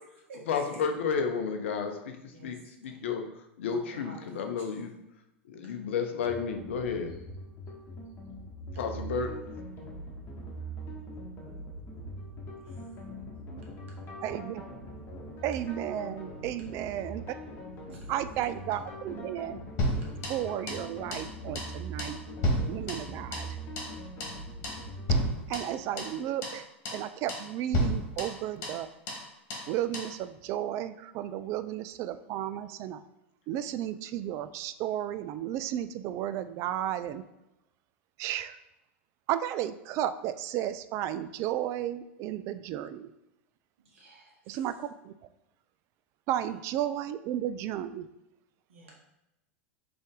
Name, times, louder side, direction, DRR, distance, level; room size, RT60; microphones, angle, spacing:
voice 1, 0.5-4.9 5.4-7.1 8.7-9.3, left 6 dB, 70° left, 5 dB, 0.6 m, -32 dB
voice 2, 3.7-4.6 17.9-18.1 43.8-44.6 48.7-48.9, right 2 dB, 70° right, -2 dB, 1.5 m, -51 dB
sound 1, 6.2-25.2, right 1 dB, 35° left, 1.3 m, -42 dB
voice 3, 14.2-14.6 15.4-17.4 18.1-19.6 20.3-22.2 22.7-23.5 25.5-26.6 26.9-28.9 29.7-33.0 33.5-37.2 38.2-38.6 39.3-43.1 44.5-45.1 46.3-48.1, right 11 dB, 45° right, 12 dB, 0.3 m, -33 dB
sound 2, 19.8-20.9 21.1-21.3 21.5-21.7 22.0-23.5 23.8-23.9 24.2-24.4 24.6-24.8 25.1-26.2 26.4-26.6 26.8-27.0 27.3-27.5 27.7-28.8 29.1-29.2 29.5-29.7 29.9-30.1, equal, 50° left, 1.5 m, -31 dB
3.8 x 3.4 x 3.7 m, 0.89 s
hypercardioid pair, 90°, 7 cm